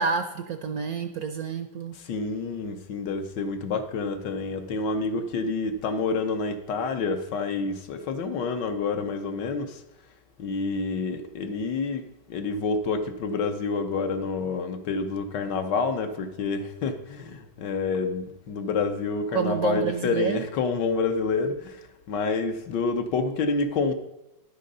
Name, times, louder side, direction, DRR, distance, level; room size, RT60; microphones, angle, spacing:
voice 1, 0.0-1.9 19.3-20.4, right 6 dB, 65° right, 1.0 m, -28 dB
voice 2, 1.9-9.8 10.4-23.9, left 4 dB, 65° left, 1.4 m, -28 dB
10.5 x 6.5 x 5.4 m
omnidirectional pair, 2.1 m